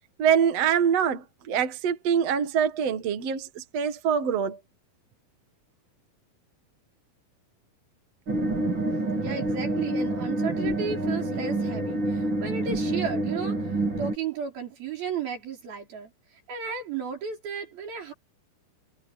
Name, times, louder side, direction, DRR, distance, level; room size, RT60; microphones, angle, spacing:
voice 1, 0.2-4.6, right 8 dB, 50° right, 2.4 m, -24 dB
sound 1, 8.3-14.2, right 2 dB, 30° right, 3.6 m, -27 dB
voice 2, 9.2-13.6 14.0-16.1 16.5-18.1, right 6 dB, 70° right, 7.2 m, -33 dB
omnidirectional pair, 4.5 m